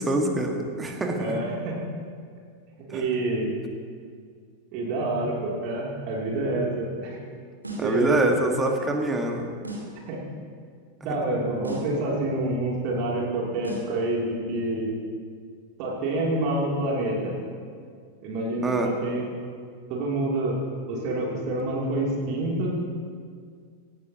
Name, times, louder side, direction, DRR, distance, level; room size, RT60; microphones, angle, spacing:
voice 1, 0.0-1.4 2.9-3.0 7.8-9.5 11.0-11.2 18.6-18.9, right 2 dB, 15° right, 2 dB, 1.8 m, -25 dB
voice 2, 1.2-1.8 2.9-3.5 4.7-7.2 7.8-8.3 8.8-8.9 10.1-10.2 11.0-14.9 15.8-17.4 18.2-19.2 19.9-20.6 20.9-22.8, right 2 dB, 40° right, -3 dB, 2.9 m, -27 dB
sound 1, 7.6-8.0 9.6-10.0 11.6-12.0 13.6-14.0, right 1 dB, 85° right, 2.6 m, -36 dB
18.0 x 15.5 x 2.9 m, 2.1 s
figure-of-eight pair, 90°, 0 cm